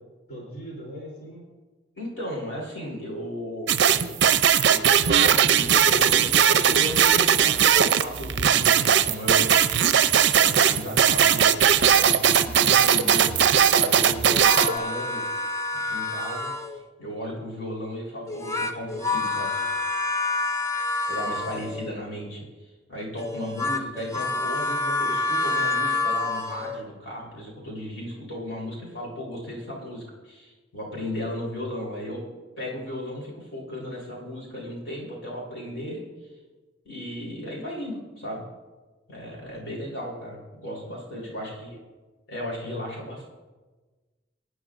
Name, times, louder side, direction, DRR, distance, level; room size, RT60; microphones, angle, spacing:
voice 1, 0.3-1.5 21.2-21.4 39.4-39.5 41.1-41.6, equal, 55° left, -4 dB, 3.3 m, -42 dB
voice 2, 1.9-4.2 4.6-15.2 15.8-16.5 17.0-19.6 21.1-22.5 22.9-32.3 32.6-36.0 36.8-38.4 39.1-41.8 42.3-43.3, left 1 dB, 80° left, -4 dB, 3.9 m, -35 dB
sound 1, 3.7-14.7, right 8 dB, 65° right, 0.5 m, -19 dB
sound 2, 14.3-16.8 18.3-21.9 23.2-26.8, left 3 dB, 15° left, 0.6 m, -28 dB
25.0 x 9.4 x 2.5 m, 1.3 s
head